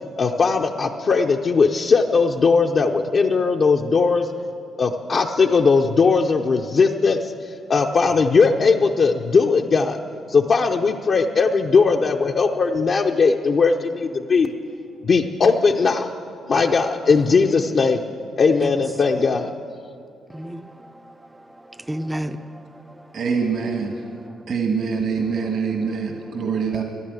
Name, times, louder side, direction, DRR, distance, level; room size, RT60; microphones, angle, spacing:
voice 1, 0.1-4.3 4.8-10.0 10.3-14.5 15.0-16.1 16.5-18.0 18.4-19.5, left 4 dB, 50° left, 0.7 m, -19 dB
voice 2, 20.3-23.2 24.0-24.4 25.8-25.9, equal, 10° right, 0.6 m, -34 dB
voice 3, 23.1-24.0 24.5-26.8, right 5 dB, 60° right, 1.6 m, -24 dB
13.5 x 11.0 x 8.2 m
cardioid pair, 90°, 0 cm